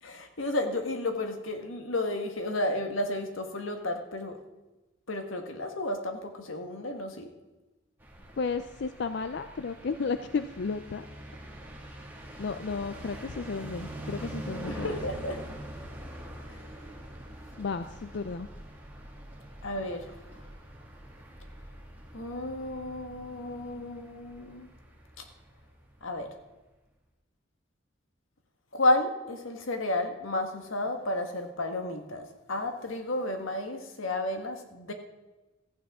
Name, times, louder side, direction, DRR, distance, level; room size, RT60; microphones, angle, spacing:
voice 1, 0.0-4.4 5.1-7.3 14.2-14.3 14.7-15.5 16.5-16.6 19.6-20.2 22.1-24.7 25.2-25.3 26.0-26.3 28.7-34.9, left 1 dB, 85° left, 5 dB, 1.5 m, -32 dB
sound 1, 8.0-26.0, right 1 dB, 10° right, 2.0 m, -44 dB
voice 2, 8.4-11.0 12.4-15.0 17.6-18.5, left 4 dB, 60° left, 10 dB, 0.4 m, -33 dB
15.5 x 14.0 x 3.7 m, 1.1 s
head